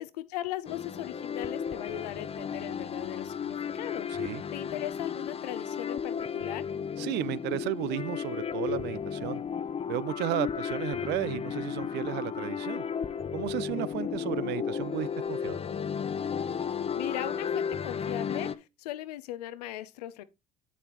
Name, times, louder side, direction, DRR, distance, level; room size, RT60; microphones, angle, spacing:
voice 1, 0.0-4.1 4.5-6.7 16.9-20.2, left 14 dB, 90° left, 0.6 m, -38 dB
sound 1, 0.7-18.5, left 7 dB, 30° left, 0.6 m, -34 dB
voice 2, 4.1-4.4 7.0-9.4 9.9-12.8 13.3-15.7, right 15 dB, 60° right, 0.5 m, -34 dB
8.4 x 7.1 x 3.0 m
hypercardioid pair, 75°, 20 cm